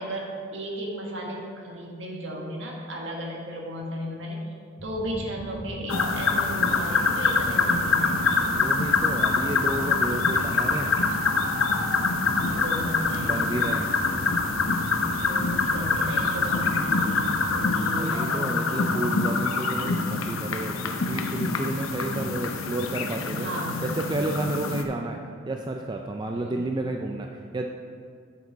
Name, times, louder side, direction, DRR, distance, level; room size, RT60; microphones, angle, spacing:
voice 1, 0.0-4.4 4.8-8.4 12.4-13.5 15.1-17.3 17.7-19.0 23.4-23.8 26.3-26.6, equal, 65° right, -1 dB, 1.5 m, -35 dB
sound 1, 4.8-17.7, equal, 25° left, 1.2 m, -40 dB
sound 2, 5.9-24.8, left 4 dB, 85° left, 0.7 m, -25 dB
voice 2, 8.5-11.0 13.2-13.9 17.9-23.5 23.8-25.2 25.5-27.7, right 2 dB, 20° right, 3 dB, 0.3 m, -31 dB
8.0 x 7.4 x 4.0 m, 2.3 s
head